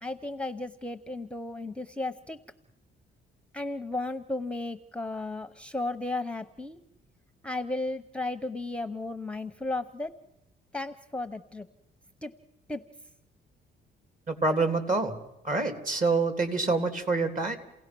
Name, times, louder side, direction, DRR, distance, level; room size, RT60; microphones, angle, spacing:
voice 1, 0.0-2.4 3.5-6.8 7.4-10.1 10.7-11.7 12.2-12.3 12.7-12.8, left 2 dB, 5° left, 10 dB, 0.8 m, -34 dB
voice 2, 14.3-15.2 15.4-17.6, right 3 dB, 40° right, 7 dB, 3.1 m, -26 dB
29.0 x 17.0 x 6.1 m, 0.94 s
cardioid pair, 90°, 20 cm